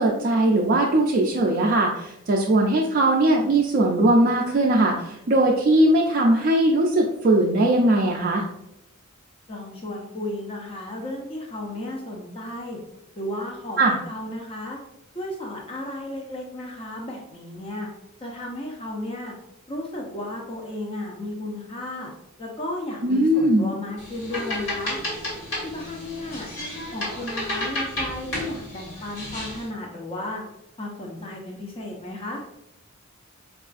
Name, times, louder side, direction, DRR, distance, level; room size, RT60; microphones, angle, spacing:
voice 1, 0.0-8.4 13.8-13.9 23.0-23.7, right 1 dB, 45° right, -2 dB, 0.4 m, -20 dB
voice 2, 9.5-12.8 13.2-14.8 15.1-17.9 18.2-19.3 19.7-22.1 22.4-25.0 25.6-26.5 26.9-30.4 30.8-32.4, left 1 dB, 25° left, -1 dB, 0.5 m, -34 dB
sound 1, 24.0-29.7, left 1 dB, 60° left, 1.4 m, -32 dB
4.6 x 2.4 x 2.4 m, 0.82 s
head